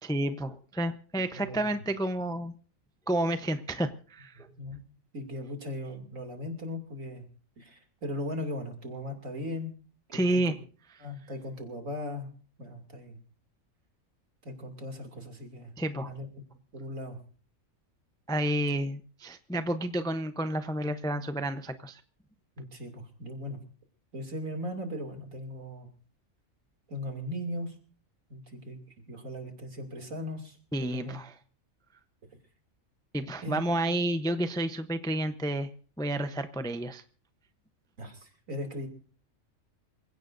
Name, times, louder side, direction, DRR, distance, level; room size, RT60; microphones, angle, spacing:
voice 1, 0.0-2.5 3.1-4.5 10.1-10.5 15.8-16.1 18.3-22.0 30.7-31.3 33.1-35.7 36.0-37.0, right 1 dB, 5° left, 9 dB, 0.5 m, -30 dB
voice 2, 1.3-1.8 4.4-4.8 5.1-7.3 7.6-9.8 10.1-10.6 11.0-12.3 12.6-13.2 14.4-15.7 16.0-16.3 16.7-17.2 22.6-23.6 24.1-25.9 26.9-27.7 28.3-31.2 33.4-33.9 38.0-38.9, left 1 dB, 75° right, 4 dB, 3.1 m, -38 dB
26.5 x 16.5 x 2.6 m, 0.41 s
omnidirectional pair, 1.4 m